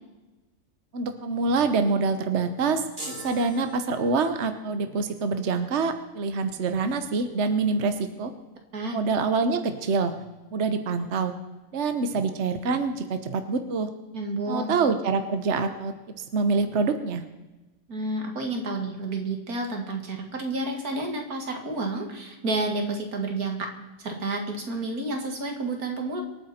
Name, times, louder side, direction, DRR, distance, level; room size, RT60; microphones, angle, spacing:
voice 1, 0.9-2.9 3.2-8.3 8.9-10.2 10.5-11.3 11.7-13.9 14.5-17.3, right 4 dB, 50° right, 8 dB, 1.2 m, -26 dB
sound 1, 3.0-4.5, right 1 dB, 35° right, 4.0 m, -40 dB
voice 2, 14.1-14.7 17.9-23.7 24.0-26.2, right 2 dB, 80° right, 3 dB, 2.7 m, -30 dB
26.0 x 9.3 x 4.4 m, 1.1 s
omnidirectional pair, 1.6 m